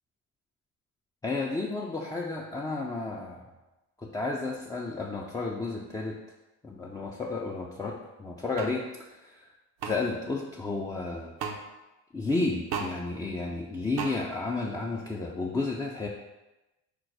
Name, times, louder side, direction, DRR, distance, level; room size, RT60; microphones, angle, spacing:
voice 1, 1.2-3.5 4.0-6.2 6.6-9.5 9.8-11.3 12.1-16.1, left 3 dB, 10° left, -2 dB, 0.3 m, -32 dB
sound 1, 8.6-8.7 9.8-9.9 11.4-11.6 12.7-12.9 14.0-14.1, right 6 dB, 65° right, 0.7 m, -32 dB
5.1 x 2.1 x 4.6 m, 1.0 s
supercardioid pair, 90°, 41 cm